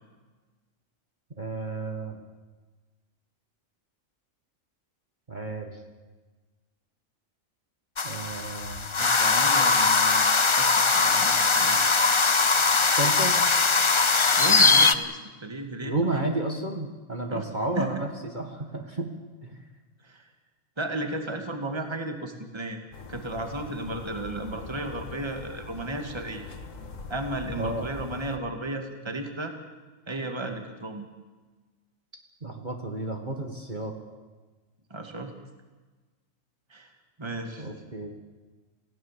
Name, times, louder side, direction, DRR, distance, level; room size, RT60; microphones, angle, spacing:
voice 1, 1.4-2.2 5.3-5.7 8.0-8.9 12.8-13.5 15.8-18.1 18.3-19.1 19.4-19.6 27.6-27.8 32.4-33.9 37.6-38.1, right 2 dB, 35° right, 3 dB, 2.1 m, -31 dB
sound 1, 8.0-15.0, left 4 dB, 25° left, 0.7 m, -21 dB
voice 2, 9.0-10.3 10.6-11.8 14.4-16.1 17.3-17.4 17.8-17.9 20.0-20.3 20.8-22.8 23.1-26.5 27.1-29.5 30.1-31.1 34.9-35.3 36.7-37.7, right 2 dB, 20° right, 5 dB, 2.1 m, -34 dB
sound 2, 22.9-28.4, left 4 dB, 70° left, 1.9 m, -42 dB
28.0 x 17.0 x 7.5 m, 1.3 s
omnidirectional pair, 1.4 m